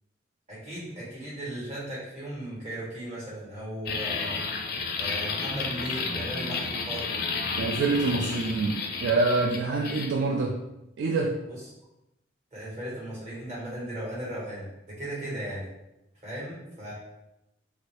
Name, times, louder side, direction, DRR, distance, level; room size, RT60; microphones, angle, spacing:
voice 1, 0.5-4.4 5.0-7.1 12.5-15.7 16.2-16.9, right 1 dB, 35° right, -7 dB, 1.3 m, -36 dB
sound 1, 3.9-10.1, left 4 dB, 50° left, 0.4 m, -32 dB
voice 2, 7.6-10.6 11.0-11.4, right 3 dB, 65° right, 1 dB, 0.3 m, -26 dB
3.0 x 2.6 x 3.2 m, 0.89 s
head